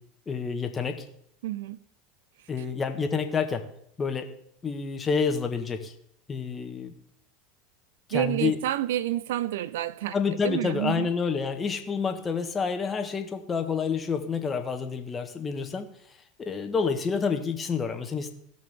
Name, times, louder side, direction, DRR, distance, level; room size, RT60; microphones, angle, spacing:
voice 1, 0.3-1.0 2.5-3.6 4.0-4.3 4.6-5.9 6.3-6.9 8.1-8.6 10.1-15.9 16.4-18.3, left 5 dB, 25° left, 1.6 m, -28 dB
voice 2, 1.4-1.8 8.1-10.2 10.4-11.1, right 13 dB, 75° right, 0.5 m, -29 dB
17.5 x 6.2 x 3.7 m
hypercardioid pair, 90°, 0 cm